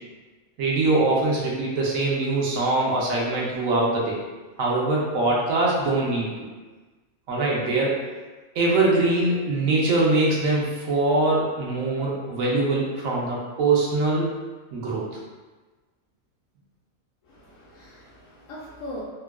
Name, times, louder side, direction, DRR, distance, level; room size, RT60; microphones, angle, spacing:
voice 1, 0.6-4.2 4.6-6.5 7.3-7.9 8.5-14.3 14.7-15.0, right 2 dB, 75° right, -4 dB, 1.1 m, -23 dB
voice 2, 17.2-19.0, left 1 dB, 75° left, -8 dB, 1.0 m, -40 dB
3.7 x 2.3 x 2.2 m, 1.3 s
omnidirectional pair, 1.4 m